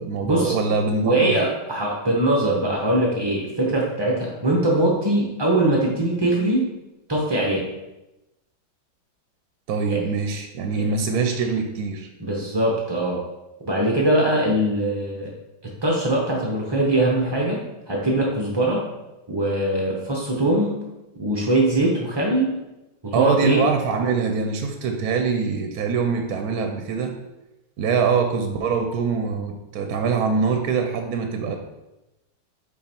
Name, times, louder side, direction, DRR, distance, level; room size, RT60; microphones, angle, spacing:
voice 1, 0.0-1.3 9.7-12.1 23.1-27.1 27.8-31.5, right 5 dB, 70° right, 5 dB, 1.0 m, -23 dB
voice 2, 1.0-6.7 7.1-7.6 9.9-10.0 10.8-10.9 12.2-13.2 13.6-15.3 15.8-18.8 19.3-20.8 21.2-22.5 23.0-23.6, right 1 dB, 35° right, -2 dB, 0.4 m, -22 dB
5.6 x 4.0 x 4.4 m, 0.99 s
omnidirectional pair, 1.9 m